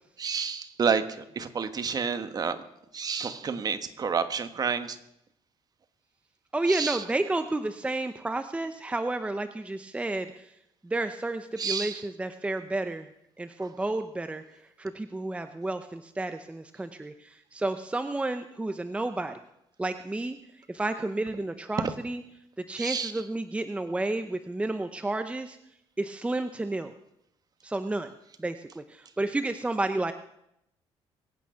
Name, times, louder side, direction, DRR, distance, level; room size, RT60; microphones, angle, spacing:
voice 1, 0.2-2.6 2.9-5.0 6.7-7.0 11.6-12.0 13.6-13.7 22.8-23.1, right 6 dB, 40° right, 9 dB, 1.4 m, -29 dB
voice 2, 6.5-10.5 10.8-13.1 13.4-14.4 14.8-19.4 19.8-20.4 20.7-22.2 22.6-25.6 26.0-26.9 27.6-28.1 28.4-30.1, right 2 dB, 10° right, 9 dB, 0.8 m, -31 dB
22.5 x 9.2 x 5.8 m, 0.80 s
cardioid pair, 110°, 10 cm